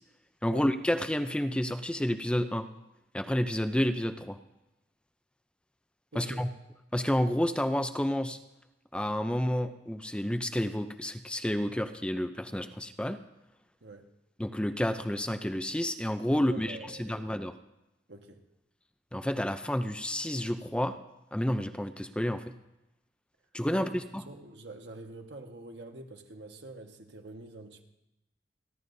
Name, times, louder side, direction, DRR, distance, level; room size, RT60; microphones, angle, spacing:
voice 1, 0.4-2.7 3.1-4.4 6.2-6.5 6.9-8.4 8.9-13.2 14.4-17.5 19.1-21.0 21.3-22.5 23.5-23.9, equal, 5° left, 0.5 m, -30 dB
voice 2, 6.1-6.5 13.8-14.1 16.3-17.3 18.1-18.4 23.7-27.8, right 2 dB, 80° right, 1.5 m, -46 dB
29.5 x 11.0 x 2.7 m
head